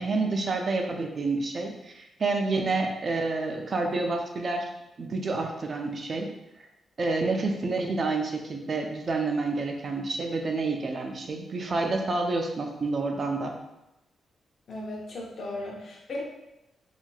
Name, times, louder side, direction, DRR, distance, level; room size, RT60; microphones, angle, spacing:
voice 1, 0.0-4.6 5.0-6.3 7.0-13.5, right 3 dB, 45° right, 2 dB, 0.5 m, -28 dB
voice 2, 14.7-16.2, left 1 dB, 55° left, -3 dB, 1.0 m, -36 dB
4.0 x 2.9 x 2.3 m, 0.93 s
cardioid pair, 85°, 0 cm